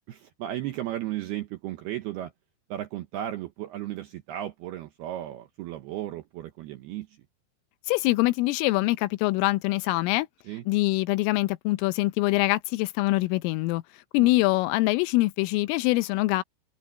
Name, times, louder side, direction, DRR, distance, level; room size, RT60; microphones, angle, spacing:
voice 1, 0.0-2.3 2.7-7.2 10.5-10.6 14.2-14.3, right 13 dB, 85° right, 2.2 m, -35 dB
voice 2, 7.9-10.3 10.7-13.8 14.1-16.4, left 20 dB, 80° left, 3.2 m, -24 dB
open air
omnidirectional pair, 5.9 m